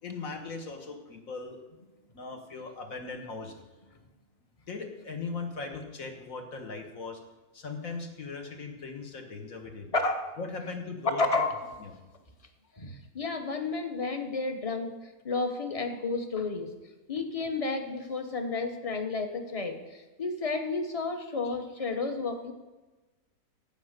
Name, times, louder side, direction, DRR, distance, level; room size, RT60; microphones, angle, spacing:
voice 1, 0.0-1.6 2.1-3.5 4.7-7.2 7.5-9.9 10.4-11.2 11.8-11.9 12.7-12.8, left 4 dB, 60° left, 4 dB, 1.8 m, -39 dB
voice 2, 9.9-10.3 11.2-11.6 12.8-14.9 15.2-16.7 17.1-22.5, left 3 dB, 25° left, 6 dB, 1.0 m, -31 dB
15.5 x 5.3 x 6.6 m, 1.2 s
omnidirectional pair, 1.6 m